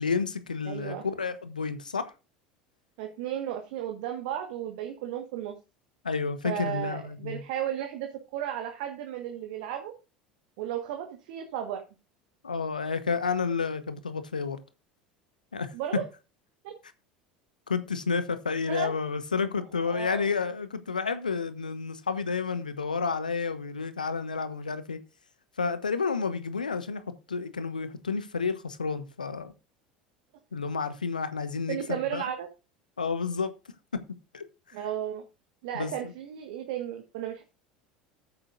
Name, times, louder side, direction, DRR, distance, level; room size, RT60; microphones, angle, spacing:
voice 1, 0.0-2.1 6.0-7.4 12.4-14.6 15.5-15.7 17.7-25.0 25.6-27.0 27.3-29.5 30.5-32.3 33.0-33.5 33.9-34.0 34.3-34.4 35.7-35.9, left 5 dB, 80° left, 1.1 m, -30 dB
voice 2, 0.6-1.0 3.0-5.5 6.4-9.9 10.6-11.8 15.7-16.0 16.6-16.7 18.7-18.9 19.8-20.3 31.7-32.5 34.7-35.2 35.6-37.4, right 10 dB, 60° right, 1.5 m, -34 dB
14.0 x 8.7 x 2.6 m
figure-of-eight pair, 70°, 4 cm